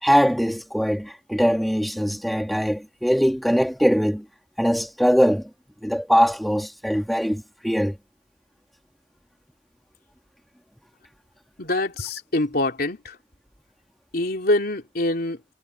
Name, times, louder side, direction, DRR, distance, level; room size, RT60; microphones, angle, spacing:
voice 1, 0.0-4.2 4.6-5.5 5.8-8.0, equal, ahead, 2.1 m, -21 dB
voice 2, 11.6-13.1 14.1-15.4, left 1 dB, 60° left, 3.3 m, -24 dB
head